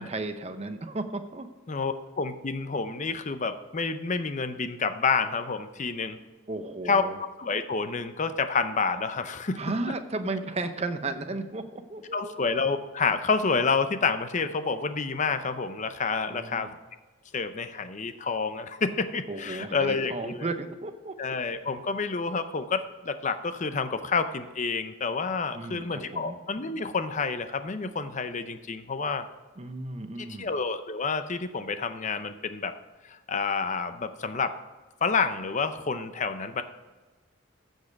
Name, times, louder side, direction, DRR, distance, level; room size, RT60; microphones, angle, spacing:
voice 1, 0.0-1.5 6.5-7.2 9.6-12.4 16.3-16.7 19.3-21.2 25.5-26.4 29.6-30.5, right 2 dB, 30° right, 8 dB, 0.7 m, -34 dB
voice 2, 1.7-6.2 6.9-7.0 7.4-9.6 12.1-16.7 17.3-20.5 21.2-29.3 30.4-32.7 33.1-34.5 35.0-36.6, left 4 dB, 35° left, 10 dB, 0.6 m, -29 dB
14.5 x 5.4 x 5.2 m, 1.3 s
head